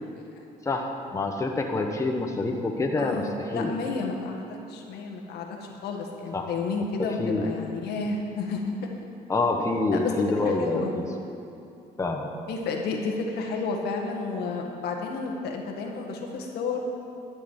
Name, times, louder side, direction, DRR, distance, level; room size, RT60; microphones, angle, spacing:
voice 1, 0.6-3.7 6.3-6.5 7.2-7.5 9.3-11.1 12.0-12.3, left 2 dB, 20° left, 2 dB, 1.1 m, -27 dB
voice 2, 3.0-8.6 9.9-10.1 10.4-10.9 12.5-16.8, left 4 dB, 75° left, 1 dB, 1.7 m, -31 dB
12.0 x 6.7 x 8.0 m, 2.7 s
cardioid pair, 110°, 17 cm